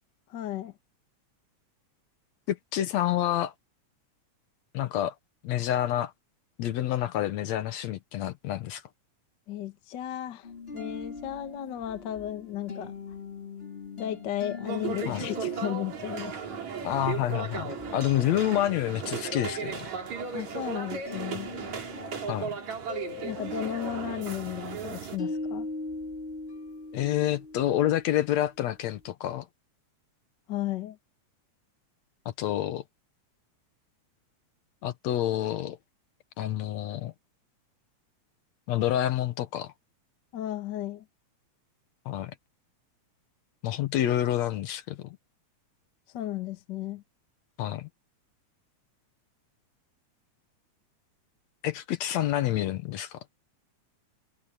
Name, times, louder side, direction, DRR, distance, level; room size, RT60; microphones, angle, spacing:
voice 1, 0.3-0.7 9.5-10.5 10.7-12.9 14.0-16.6 20.3-21.5 23.2-25.7 30.5-31.0 40.3-41.0 46.1-47.0, left 12 dB, 50° left, 1.6 m, -34 dB
voice 2, 2.5-3.5 4.7-5.1 5.4-6.1 6.6-8.8 15.1-15.3 16.8-19.9 22.3-22.6 26.9-29.5 32.3-32.8 34.8-35.8 36.4-37.1 38.7-39.7 42.1-42.4 43.6-45.2 47.6-47.9 51.6-53.3, left 12 dB, 75° left, 2.1 m, -28 dB
sound 1, 10.4-28.5, left 3 dB, 20° left, 3.7 m, -42 dB
sound 2, 14.6-25.2, right 7 dB, 75° right, 4.1 m, -36 dB
omnidirectional pair, 3.3 m